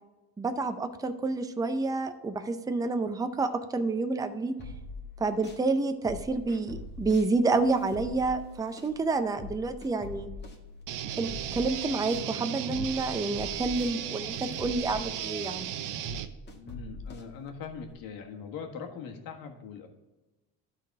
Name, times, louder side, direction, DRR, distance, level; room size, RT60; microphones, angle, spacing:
voice 1, 0.4-4.5 5.2-10.3 11.2-15.7, right 3 dB, 10° right, 8 dB, 0.5 m, -29 dB
sound 1, 4.6-5.6 6.1-12.3 12.7-17.9, left 2 dB, 30° left, 1.8 m, -44 dB
sound 2, 10.9-16.3, right 10 dB, 60° right, 0.7 m, -36 dB
voice 2, 16.6-19.9, left 6 dB, 65° left, 3 dB, 1.6 m, -41 dB
12.0 x 4.1 x 4.6 m, 1.1 s
cardioid pair, 110°, 36 cm